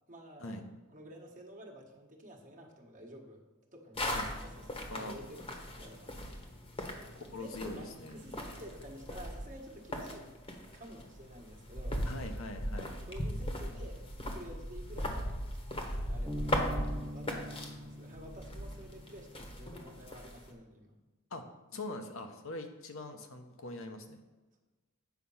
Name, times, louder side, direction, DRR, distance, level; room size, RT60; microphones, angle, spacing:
voice 1, 0.1-0.6 0.9-3.4 3.7-6.1 7.2-10.3 10.7-12.0 12.7-15.3 15.7-20.9, equal, 35° right, 1 dB, 1.3 m, -51 dB
sound 1, 4.0-20.5, equal, 25° left, 1.1 m, -39 dB
voice 2, 7.1-8.1 12.1-12.9 21.3-21.4 21.7-24.2, left 2 dB, 65° left, 5 dB, 0.9 m, -42 dB
Bass guitar, 16.3-19.7, equal, 5° left, 1.1 m, -43 dB
8.2 x 5.8 x 5.5 m, 1.2 s
head